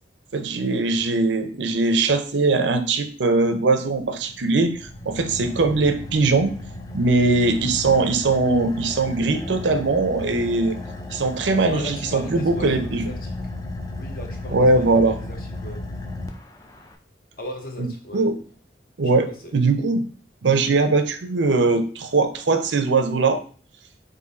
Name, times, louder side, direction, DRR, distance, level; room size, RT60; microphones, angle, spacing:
voice 1, 0.3-6.5 6.9-10.8 11.1-13.1 14.5-15.2 18.1-18.4 19.0-19.3 19.5-20.1 20.4-23.4, right 3 dB, 85° right, 0.6 m, -20 dB
Car / Idling, 4.0-17.0, left 2 dB, 20° left, 0.4 m, -35 dB
voice 2, 11.7-13.3 14.0-15.9 17.4-18.3 19.0-19.5, left 1 dB, 50° left, 0.9 m, -37 dB
3.8 x 2.7 x 4.0 m
head